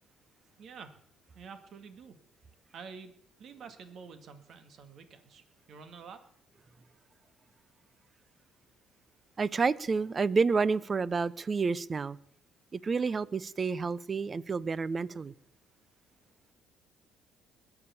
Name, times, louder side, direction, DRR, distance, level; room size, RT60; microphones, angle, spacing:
voice 1, 0.6-0.9 1.3-2.2 2.7-3.1 3.4-6.2, right 5 dB, 60° right, 2.0 m, -48 dB
voice 2, 9.4-12.2 12.7-15.3, right 4 dB, 35° right, 0.6 m, -29 dB
20.5 x 7.0 x 7.0 m
cardioid pair, 85°, 0 cm